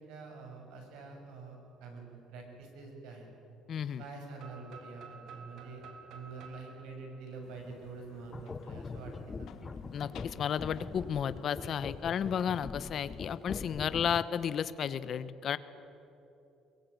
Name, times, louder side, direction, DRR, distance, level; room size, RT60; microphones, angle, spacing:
voice 1, 0.0-3.3 4.0-5.8 6.1-9.1 9.4-9.8, right 4 dB, 85° right, 2 dB, 6.3 m, -46 dB
voice 2, 3.7-4.0 9.9-15.6, left 8 dB, 45° left, 14 dB, 0.9 m, -33 dB
sound 1, 4.4-8.2, right 5 dB, 60° right, 3.3 m, -52 dB
sound 2, 7.4-13.5, left 8 dB, 60° left, 1.6 m, -55 dB
sound 3, 8.3-14.5, left 4 dB, 20° left, 0.6 m, -43 dB
23.0 x 22.0 x 9.5 m, 3.0 s
cardioid pair, 150°, 0 cm